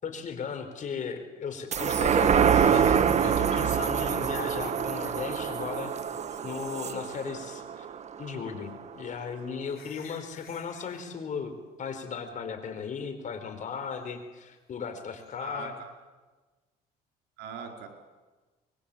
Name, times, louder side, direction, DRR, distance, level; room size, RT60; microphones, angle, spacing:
voice 1, 0.0-5.9 6.4-7.9 8.2-15.8, left 6 dB, 50° left, 7 dB, 4.7 m, -36 dB
sound 1, 1.7-8.5 8.9-9.0, right 7 dB, 40° right, 1.5 m, -26 dB
sound 2, 2.4-3.8 5.5-6.0 6.3-6.4 7.1-7.6 9.0-9.1 9.6-11.1 15.2-15.3, left 9 dB, 65° left, 4.6 m, -51 dB
voice 2, 15.4-15.9 17.4-17.9, right 6 dB, 90° right, 3 dB, 5.2 m, -41 dB
25.0 x 21.5 x 8.8 m, 1.3 s
cardioid pair, 110°, 17 cm